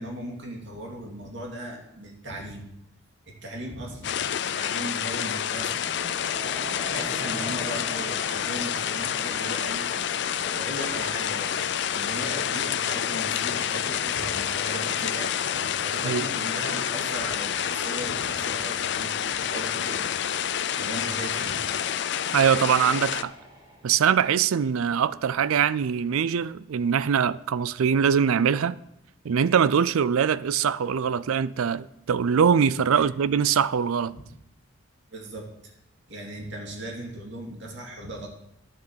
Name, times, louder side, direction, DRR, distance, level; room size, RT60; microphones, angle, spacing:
voice 1, 0.0-2.7 3.3-5.8 6.9-9.8 10.3-11.6 11.9-20.2 20.8-21.7 33.0-33.1 34.1-34.2 35.1-35.7 36.1-38.3, right 1 dB, 55° right, 2.6 m, -38 dB
sound 1, 4.0-23.2, left 9 dB, 55° left, 0.4 m, -28 dB
Train, 5.2-24.1, equal, 20° right, 2.2 m, -44 dB
voice 2, 22.3-23.3 23.8-28.8 29.2-34.2, right 7 dB, 80° right, 0.4 m, -23 dB
11.0 x 7.2 x 6.2 m
head